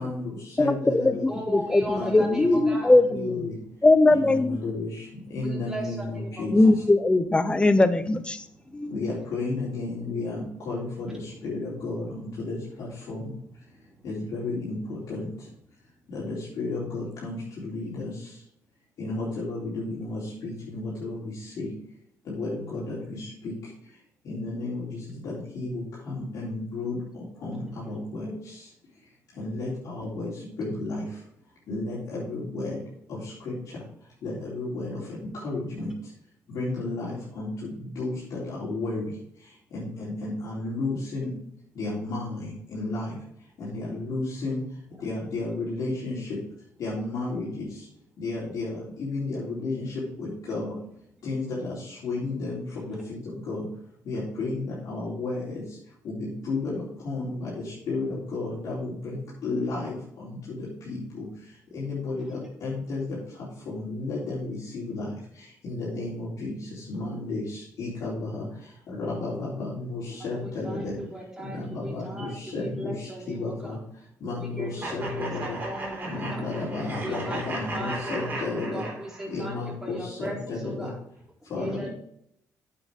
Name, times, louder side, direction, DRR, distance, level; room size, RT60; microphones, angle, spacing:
voice 1, 0.0-1.4 1.9-2.6 3.1-3.6 4.1-6.6 8.9-13.6 14.0-15.5 16.1-18.4 19.0-21.7 22.2-28.7 29.3-31.3 31.7-32.8 33.1-36.1 36.5-41.3 41.7-46.4 46.8-47.9 48.2-50.8 51.2-53.7 54.0-71.0 71.4-75.6 76.0-78.8 79.3-80.9 81.4-81.9, left 2 dB, 65° left, -8 dB, 3.8 m, -33 dB
voice 2, 0.6-3.5 3.8-4.6 6.5-8.4 8.7-8.9, left 2 dB, 15° left, 12 dB, 0.8 m, -20 dB
voice 3, 1.3-2.9 5.4-6.5 8.6-8.9 13.7-14.1 27.5-28.0 39.9-40.1 70.1-73.8 74.6-74.7 75.0-76.4 77.0-79.6 79.8-81.0 81.6-81.9, right 1 dB, 5° right, -3 dB, 4.0 m, -38 dB
sound 1, 74.8-79.4, right 2 dB, 30° right, 3.8 m, -36 dB
9.1 x 7.3 x 3.7 m, 0.73 s
cardioid pair, 105°, 6 cm